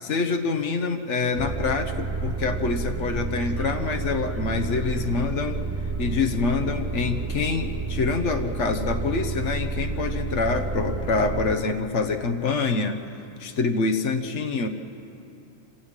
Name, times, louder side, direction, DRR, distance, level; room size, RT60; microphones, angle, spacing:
voice 1, 0.0-5.6 6.0-13.0 13.4-14.7, left 4 dB, 80° left, 6 dB, 1.4 m, -26 dB
sound 1, 1.3-11.6, right 4 dB, 15° right, 0.8 m, -30 dB
26.0 x 16.5 x 8.9 m, 2.7 s
omnidirectional pair, 1.2 m